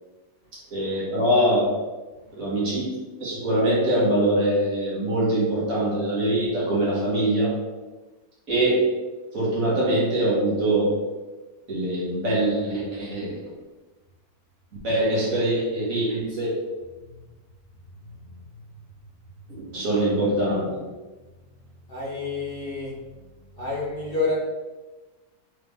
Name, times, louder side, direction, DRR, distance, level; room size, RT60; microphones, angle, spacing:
voice 1, 0.7-1.7 2.4-2.9 3.2-7.5 8.5-8.9 9.3-10.9 11.7-13.4 14.8-16.5 19.7-20.8, right 1 dB, 65° right, -6 dB, 1.8 m, -23 dB
voice 2, 21.9-22.9 23.6-24.3, left 3 dB, 45° left, -6 dB, 0.9 m, -28 dB
3.7 x 3.3 x 3.4 m, 1.2 s
omnidirectional pair, 1.6 m